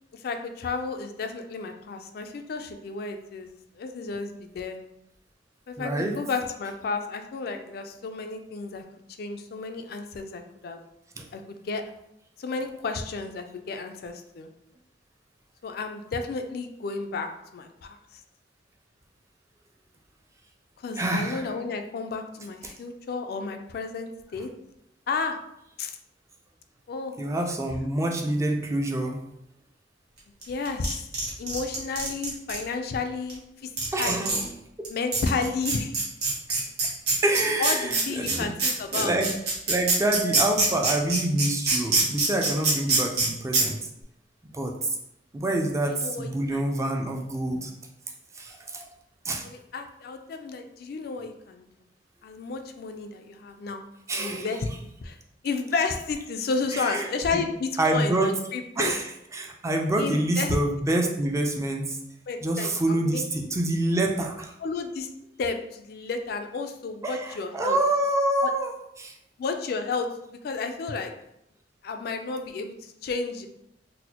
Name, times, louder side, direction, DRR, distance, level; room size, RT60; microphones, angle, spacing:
voice 1, 0.1-3.5 3.8-4.8 5.7-8.8 9.2-10.8 11.3-11.8 12.4-14.5 15.6-18.0 20.8-24.5 25.1-25.4 25.8-26.0 26.9-27.5 30.5-31.0 31.4-34.5 34.9-35.9 37.6-39.1 45.9-46.7 49.4-51.6 52.2-53.8 54.2-54.7 55.0-55.2 55.4-58.9 60.0-60.6 62.3-63.2 64.6-65.1 65.4-67.8 68.4-68.5 69.4-71.1 71.8-72.8 73.0-73.5, left 4 dB, 60° left, 6 dB, 0.3 m, -32 dB
voice 2, 5.8-6.2 11.2-11.3 21.0-21.4 22.6-22.7 27.2-29.2 33.9-34.5 34.8-34.9 37.2-38.5 38.9-39.3 39.7-43.8 44.5-44.9 45.3-47.7 48.4-48.8 49.2-49.4 54.1-54.6 56.7-57.4 57.8-58.3 58.8-59.0 59.3-62.0 62.4-64.5 67.0-69.1, right 1 dB, 15° right, 2 dB, 0.4 m, -27 dB
sound 1, 30.4-32.6 33.3-33.4 33.8-34.5 34.8-34.9 35.1-43.3 43.5-43.6, right 3 dB, 65° right, 1.2 m, -24 dB
4.0 x 2.1 x 2.8 m, 0.80 s
head